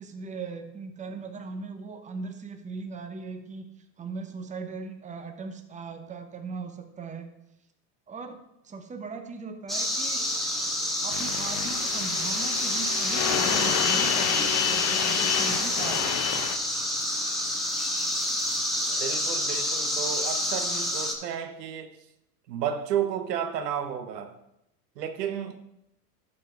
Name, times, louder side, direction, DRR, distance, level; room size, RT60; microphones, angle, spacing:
voice 1, 0.0-3.7 4.0-7.3 8.1-10.3 11.0-16.5, right 4 dB, 15° right, 0.9 m, -39 dB
sound 1, 9.7-21.1, left 1 dB, ahead, 1.5 m, -28 dB
sound 2, 11.1-16.6, left 9 dB, 30° left, 0.7 m, -28 dB
voice 2, 19.0-21.9 22.5-24.4 25.0-25.6, right 8 dB, 80° right, 1.0 m, -32 dB
11.0 x 4.4 x 4.5 m
hypercardioid pair, 95°, 48 cm